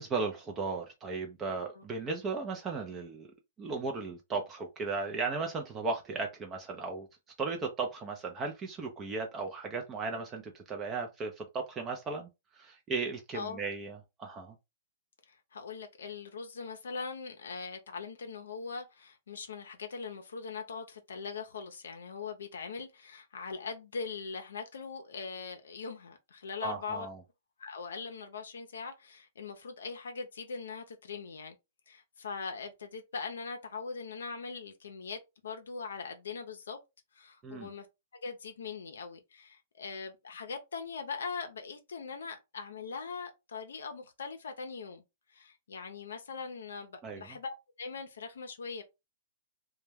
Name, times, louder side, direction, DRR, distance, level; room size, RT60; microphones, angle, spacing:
voice 1, 0.0-3.3 3.6-7.1 7.4-12.3 12.5-14.5 26.6-27.2 37.4-37.7 47.0-47.4, right 4 dB, 20° right, 0.5 m, -36 dB
voice 2, 15.3-27.1 27.6-31.5 31.9-36.8 37.1-37.9 38.1-45.0 45.3-48.8, left 5 dB, 85° left, 0.5 m, -41 dB
2.2 x 2.1 x 3.2 m
hypercardioid pair, 145°, 0 cm